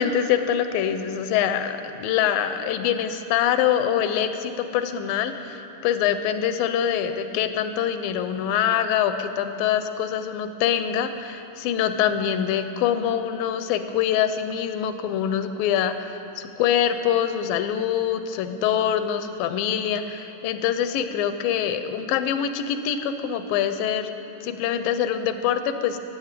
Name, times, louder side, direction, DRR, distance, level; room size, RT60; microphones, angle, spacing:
voice 1, 0.0-24.1 24.4-26.0, left 9 dB, 85° left, 10 dB, 2.5 m, -24 dB
14.5 x 9.7 x 8.3 m, 3.0 s
omnidirectional pair, 4.0 m